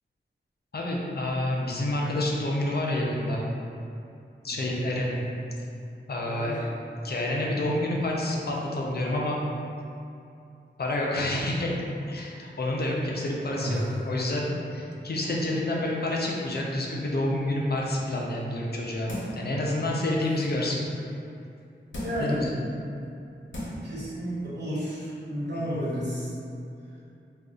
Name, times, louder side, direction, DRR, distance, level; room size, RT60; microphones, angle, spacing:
voice 1, 0.7-3.4 4.4-5.2 6.1-6.6 7.0-9.4 10.8-11.8 12.1-20.8 22.2-22.4 25.5-25.7, left 1 dB, 55° left, -3 dB, 0.5 m, -28 dB
voice 2, 4.4-4.8 6.2-6.6 13.6-14.0 22.0-22.5 23.8-26.3, equal, 60° right, -9 dB, 1.1 m, -32 dB
sound 1, 19.1-19.5 20.0-20.1 21.9-22.4 23.1-23.2 23.5-23.9 24.3-24.4, equal, 80° left, 0.8 m, -35 dB
2.6 x 2.3 x 3.7 m, 2.6 s
wide cardioid pair, 75°, 19 cm